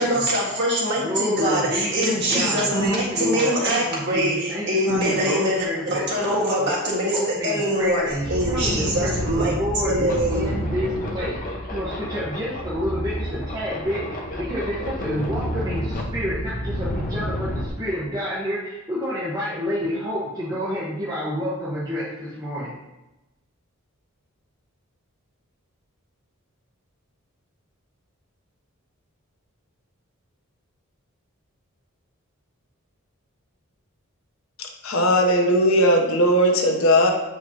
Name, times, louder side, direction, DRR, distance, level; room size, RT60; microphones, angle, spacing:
voice 1, 0.0-7.2 7.4-8.0 8.3-10.5, right 1 dB, 50° right, -5 dB, 1.8 m, -23 dB
voice 2, 1.0-6.7 7.1-22.7, equal, 15° right, -8 dB, 1.1 m, -29 dB
sound 1, 7.3-7.4 7.8-17.7, equal, 40° left, 0.9 m, -29 dB
voice 3, 34.8-37.1, equal, 70° left, 3 dB, 0.9 m, -18 dB
7.8 x 4.7 x 2.9 m, 0.97 s
head